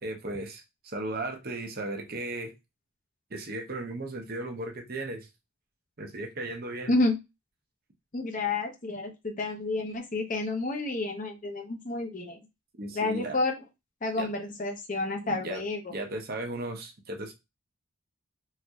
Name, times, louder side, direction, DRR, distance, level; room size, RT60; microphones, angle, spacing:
voice 1, 0.0-2.5 3.3-5.2 6.0-6.9 12.8-13.4 14.2-14.3 15.2-15.6 15.9-17.3, right 2 dB, 45° right, 3 dB, 0.8 m, -36 dB
voice 2, 8.1-12.4 12.9-13.5 14.0-15.8, left 2 dB, 35° left, 3 dB, 0.7 m, -30 dB
4.2 x 2.6 x 2.3 m, 0.23 s
head